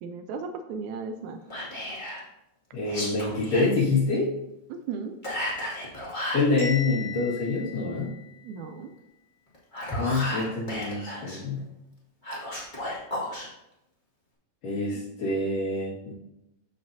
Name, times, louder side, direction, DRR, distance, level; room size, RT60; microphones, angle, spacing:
voice 1, 0.0-1.4 4.7-5.1 8.4-8.9, right 5 dB, 85° right, 7 dB, 1.7 m, -35 dB
Whispering, 1.5-2.2 2.8-3.7 5.2-6.5 9.5-11.4 12.2-13.5, left 1 dB, 20° left, 1.6 m, -33 dB
voice 2, 2.7-4.3 6.3-8.1 9.9-11.7 14.6-16.1, left 3 dB, 75° left, -11 dB, 3.4 m, -26 dB
Bell, 6.6-8.6, left 5 dB, 90° left, 5.0 m, -38 dB
14.0 x 5.0 x 2.7 m, 0.87 s
omnidirectional pair, 3.9 m